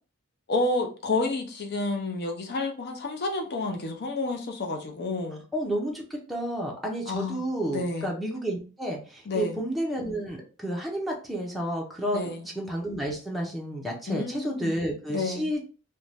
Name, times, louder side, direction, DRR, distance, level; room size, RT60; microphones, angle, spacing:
voice 1, 0.5-5.4 7.1-7.5 7.7-8.1 9.3-9.6 12.1-12.5 14.1-14.7 15.1-15.5, left 2 dB, 50° left, 0.6 m, -30 dB
voice 2, 5.5-12.3 12.6-15.6, right 1 dB, ahead, 0.5 m, -31 dB
2.6 x 2.2 x 3.2 m
head